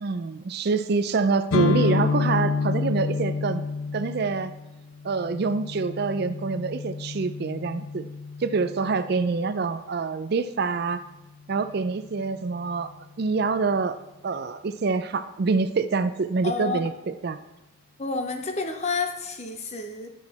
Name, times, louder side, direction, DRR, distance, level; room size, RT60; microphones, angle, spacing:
voice 1, 0.0-3.6 3.9-4.5 5.0-8.1 8.4-11.0 11.5-12.9 13.2-14.0 14.2-17.4, right 4 dB, 50° right, 11 dB, 0.4 m, -26 dB
sound 1, 1.5-9.3, left 4 dB, 80° left, 0.5 m, -29 dB
voice 2, 16.4-16.8 18.0-20.1, left 4 dB, 30° left, 6 dB, 0.7 m, -29 dB
9.9 x 6.1 x 4.2 m, 0.99 s
head